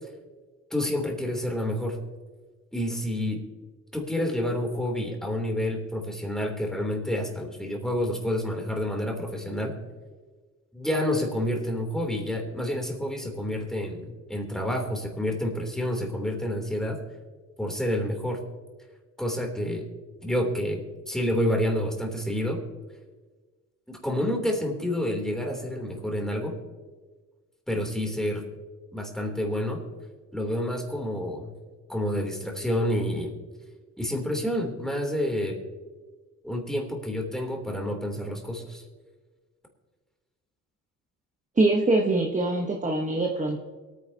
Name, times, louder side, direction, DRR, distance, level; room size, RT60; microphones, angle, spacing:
voice 1, 0.7-2.0 2.7-3.4 3.9-9.7 10.7-17.0 17.6-18.4 19.2-19.9 20.2-20.8 21.1-22.6 23.9-26.5 27.7-28.4 28.9-29.8 30.3-31.5 31.9-33.4 34.0-35.6 36.4-38.8, left 1 dB, ahead, 1 dB, 3.0 m, -29 dB
voice 2, 41.6-43.6, right 2 dB, 25° right, 1 dB, 1.1 m, -23 dB
23.0 x 9.5 x 2.8 m, 1.4 s
cardioid pair, 90°, 30 cm